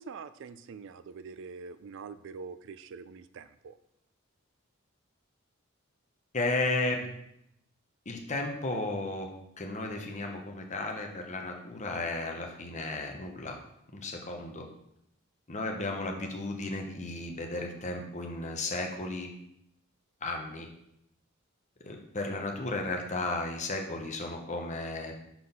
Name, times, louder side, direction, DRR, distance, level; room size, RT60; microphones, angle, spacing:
voice 1, 0.0-3.8, right 5 dB, 60° right, 13 dB, 0.4 m, -44 dB
voice 2, 6.3-7.0 8.0-9.3 9.6-13.6 13.9-14.7 15.5-19.3 20.2-20.7 21.8-25.1, left 2 dB, 35° left, 2 dB, 1.1 m, -34 dB
6.0 x 4.7 x 5.4 m, 0.78 s
head